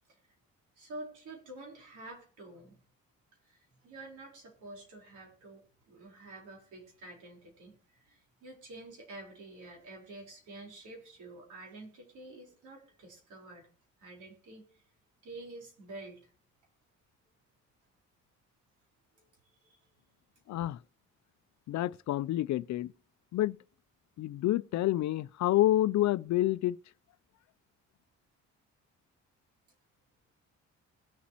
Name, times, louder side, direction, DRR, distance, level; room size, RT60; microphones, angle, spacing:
voice 1, 0.8-2.8 3.4-13.7 14.0-14.8 15.2-16.3 19.1-19.8, right 2 dB, 80° right, 4.4 m, -49 dB
voice 2, 20.5-20.8 21.7-22.9 23.3-23.6 24.2-26.8, left 14 dB, 65° left, 0.5 m, -28 dB
21.0 x 7.2 x 3.0 m
cardioid pair, 90°, 30 cm